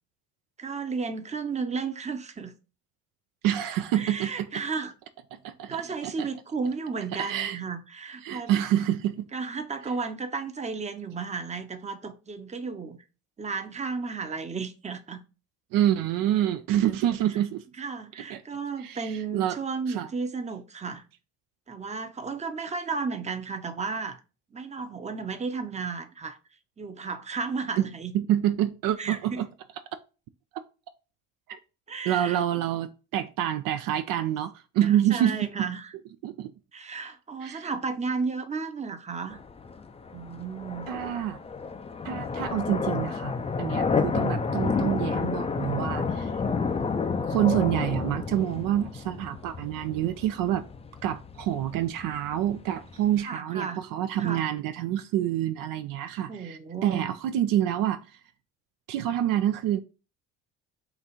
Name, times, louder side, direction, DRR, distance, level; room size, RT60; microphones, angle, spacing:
voice 1, 0.6-2.5 3.9-4.9 5.7-8.5 9.3-13.0 13.4-15.2 17.8-21.0 21.7-24.2 24.5-26.4 26.8-28.1 29.0-29.5 31.9-32.4 34.8-35.9 36.7-39.4 40.1-40.9 44.0-44.1 53.2-53.8 54.2-54.5 56.3-57.1, right 4 dB, 20° right, 0.7 m, -33 dB
voice 2, 3.4-4.6 5.3-5.8 6.0-6.3 7.2-7.6 8.2-9.3 15.7-17.6 18.2-18.4 18.8-19.6 19.9-20.1 27.8-27.9 28.1-29.5 31.5-31.6 32.1-35.7 36.2-36.5 37.4-37.7 40.9-41.4 42.0-46.3 47.2-50.7 51.0-58.1 58.9-59.8, right 11 dB, 65° right, 0.5 m, -27 dB
sound 1, 39.3-53.2, left 5 dB, 15° left, 0.4 m, -30 dB
4.1 x 2.5 x 4.1 m
supercardioid pair, 70°, 37 cm